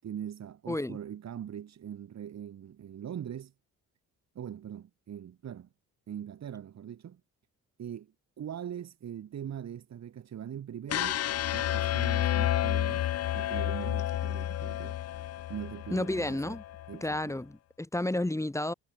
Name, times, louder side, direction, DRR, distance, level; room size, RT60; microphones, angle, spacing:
voice 1, 0.0-3.5 4.4-5.7 6.1-7.2 7.8-11.3 11.5-15.0 15.5-16.6 16.9-17.4, right 9 dB, 60° right, 5.5 m, -41 dB
voice 2, 0.7-1.0 15.9-16.6 17.0-18.7, left 1 dB, 10° left, 3.6 m, -31 dB
sound 1, 10.9-17.0, left 12 dB, 55° left, 0.6 m, -30 dB
cardioid pair, 90°, 30 cm